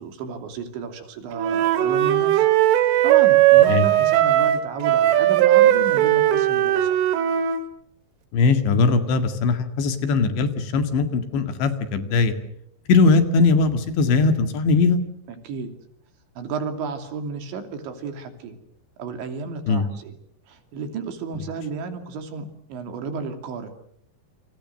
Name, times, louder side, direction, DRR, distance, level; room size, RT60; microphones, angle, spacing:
voice 1, 0.0-7.0 15.3-15.7 16.4-18.6 19.0-20.2 20.5-23.7, right 4 dB, 70° right, 7 dB, 5.1 m, -33 dB
Wind instrument woodwind instrument, 1.4-7.6, right 13 dB, 85° right, 4.3 m, -18 dB
voice 2, 8.3-12.3 12.9-15.0 19.7-19.8, left 4 dB, 70° left, 8 dB, 4.2 m, -20 dB
29.5 x 26.5 x 6.6 m, 0.68 s
omnidirectional pair, 5.5 m